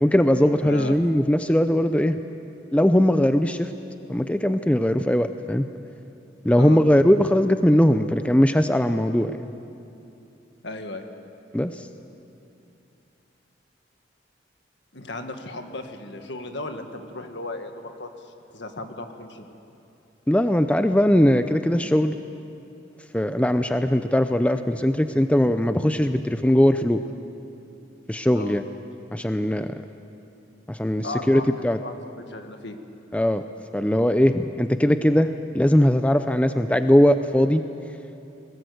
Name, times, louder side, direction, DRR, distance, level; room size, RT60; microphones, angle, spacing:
voice 1, 0.0-2.2 2.7-3.7 4.1-5.7 6.4-9.5 11.5-11.7 20.3-22.2 23.1-27.0 28.1-28.6 29.1-29.8 30.7-31.8 33.1-33.4 33.7-37.6, equal, 5° left, 9 dB, 0.5 m, -20 dB
voice 2, 0.6-1.0 6.6-6.8 10.6-11.0 14.9-19.5 28.3-28.6 31.0-32.8, left 2 dB, 65° left, 6 dB, 1.8 m, -36 dB
20.5 x 20.0 x 8.1 m, 2.8 s
head